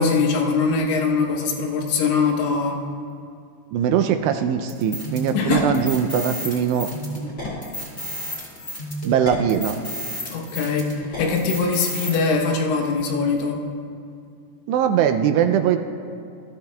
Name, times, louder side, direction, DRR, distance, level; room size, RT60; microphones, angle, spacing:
voice 1, 0.0-2.8 5.3-5.8 10.3-13.6, left 4 dB, 85° left, 1 dB, 3.3 m, -22 dB
voice 2, 3.7-6.9 9.0-9.8 14.7-15.8, right 8 dB, 85° right, 7 dB, 2.6 m, -21 dB
sound 1, 4.7-12.2, equal, 25° left, 1.6 m, -31 dB
19.0 x 13.0 x 2.3 m, 2.4 s
omnidirectional pair, 5.1 m